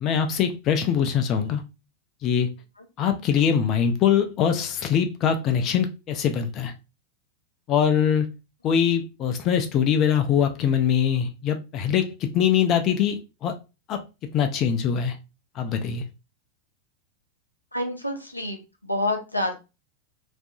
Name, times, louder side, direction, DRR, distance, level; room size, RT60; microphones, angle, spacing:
voice 1, 0.0-1.6 2.2-2.5 3.0-6.7 7.7-8.3 8.6-13.5 13.9-14.0 14.3-15.2 15.6-16.0, left 8 dB, 35° left, 0.4 m, -23 dB
voice 2, 17.7-19.5, left 1 dB, 90° left, 0.5 m, -28 dB
2.6 x 2.4 x 2.2 m
figure-of-eight pair, 90°, 0 cm